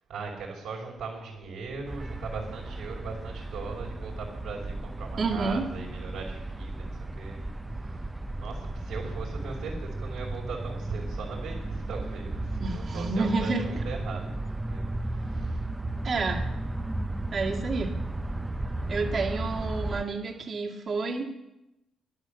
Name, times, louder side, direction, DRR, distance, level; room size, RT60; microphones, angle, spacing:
voice 1, 0.1-8.1 8.4-15.6 17.2-17.4, right 4 dB, 80° right, -2 dB, 5.0 m, -39 dB
sound 1, 1.9-20.0, right 2 dB, 15° right, 0.6 m, -34 dB
voice 2, 5.2-5.7 12.6-13.6 16.0-16.5 17.3-17.9 18.9-21.3, right 3 dB, 45° right, 0 dB, 2.0 m, -29 dB
11.5 x 10.5 x 6.8 m, 0.92 s
cardioid pair, 90°, 0 cm